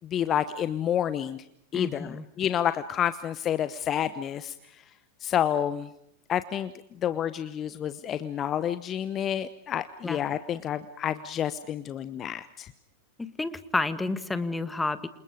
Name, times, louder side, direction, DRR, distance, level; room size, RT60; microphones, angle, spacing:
voice 1, 0.0-1.4 1.7-4.5 5.2-5.9 6.3-6.7 7.0-12.7, left 10 dB, 30° left, 13 dB, 1.0 m, -29 dB
voice 2, 1.7-2.3 10.0-10.2 13.2-15.1, left 3 dB, 10° left, 13 dB, 1.8 m, -30 dB
28.0 x 28.0 x 5.0 m, 0.75 s
figure-of-eight pair, 90°, 0 cm